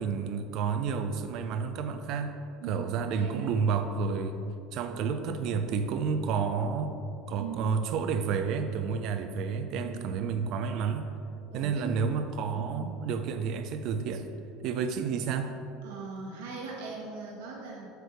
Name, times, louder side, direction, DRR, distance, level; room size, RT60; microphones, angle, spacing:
voice 1, 0.0-2.3 2.7-4.4 4.7-6.9 7.3-11.1 11.5-14.2 14.6-15.5, right 6 dB, 55° right, 7 dB, 0.6 m, -30 dB
voice 2, 3.1-3.5 4.9-5.3 7.3-7.8 9.8-10.1 11.5-12.0 12.5-12.7 15.8-17.9, right 4 dB, 75° right, -2 dB, 1.5 m, -40 dB
8.0 x 3.4 x 6.1 m, 2.6 s
hypercardioid pair, 80°, 0 cm